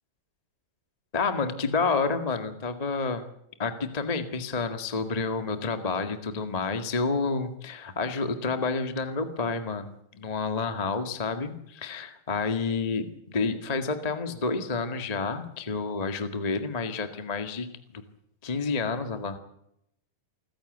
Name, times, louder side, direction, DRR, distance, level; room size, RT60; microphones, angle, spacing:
voice 1, 1.1-3.2 3.6-17.7 17.9-18.0 18.4-19.4, left 4 dB, 20° left, 8 dB, 1.0 m, -29 dB
27.5 x 15.5 x 8.0 m, 0.78 s
omnidirectional pair, 4.0 m